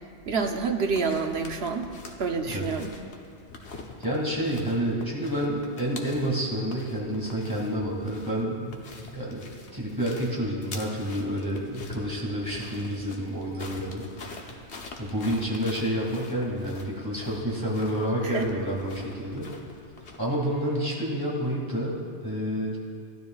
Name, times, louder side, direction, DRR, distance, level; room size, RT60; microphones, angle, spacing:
voice 1, 0.2-1.9 2.2-2.9 18.2-18.5, right 5 dB, 65° right, 4 dB, 1.1 m, -28 dB
sound 1, 0.9-20.2, left 3 dB, 75° left, 1.3 m, -45 dB
voice 2, 4.0-8.8 9.1-9.4 9.7-14.0 14.3-14.4 15.0-19.5 20.2-22.8, equal, 20° right, -5 dB, 2.3 m, -29 dB
17.0 x 12.5 x 2.4 m, 2.2 s
omnidirectional pair, 1.1 m